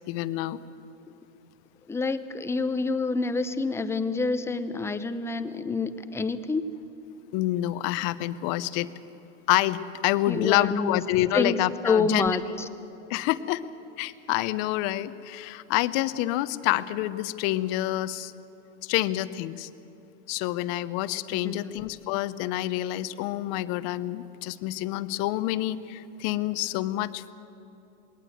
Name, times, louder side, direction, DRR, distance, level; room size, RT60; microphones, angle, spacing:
voice 1, 0.1-0.6 7.3-8.9 9.5-12.3 13.1-13.6 14.0-18.3 18.8-19.7 20.3-27.3, left 15 dB, 45° left, 15 dB, 0.8 m, -27 dB
voice 2, 1.9-6.6 10.3-11.0 11.3-11.6 11.8-12.7 21.4-21.7, left 4 dB, 5° left, 11 dB, 0.7 m, -27 dB
20.5 x 18.5 x 8.0 m, 3.0 s
hypercardioid pair, 125°, 36 cm